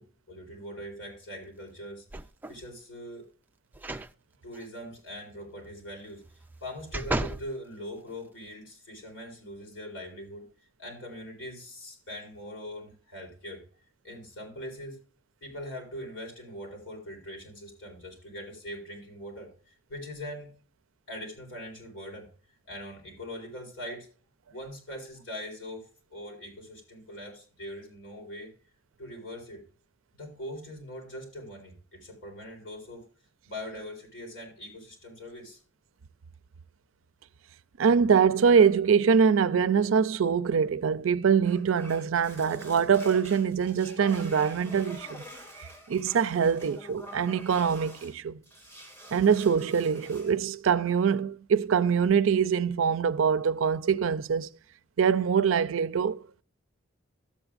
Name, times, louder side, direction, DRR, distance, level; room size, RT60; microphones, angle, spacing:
voice 1, 0.0-2.1 2.5-3.3 4.4-6.2 6.6-10.5 10.8-13.6 14.0-15.0 15.4-20.5 21.1-22.3 22.7-24.1 24.5-28.5 29.0-29.7 30.1-33.1 33.4-35.6, equal, 65° left, 4.2 m, -42 dB
sound 1, 2.1-2.7 3.7-4.1 4.5-4.6 6.2-7.5 8.1-8.2, right 2 dB, 10° right, 0.4 m, -34 dB
voice 2, 37.8-45.2 45.6-48.4 49.1-54.5 55.0-56.2, right 6 dB, 80° right, 0.4 m, -24 dB
sound 2, 41.4-48.2 48.4-50.4, equal, 15° left, 3.5 m, -46 dB
13.0 x 7.9 x 2.4 m
head